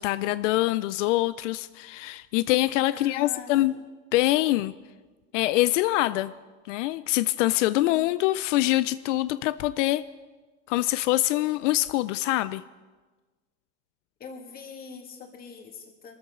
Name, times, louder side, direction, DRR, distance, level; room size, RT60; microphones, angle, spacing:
voice 1, 0.0-3.7 4.1-4.7 5.3-6.3 6.7-10.1 10.7-12.6, left 17 dB, 85° left, 15 dB, 0.5 m, -24 dB
voice 2, 2.9-3.8 7.8-8.2 14.2-16.2, left 5 dB, 25° left, 2 dB, 2.1 m, -44 dB
22.5 x 13.5 x 3.7 m, 1.3 s
supercardioid pair, 145°, 36 cm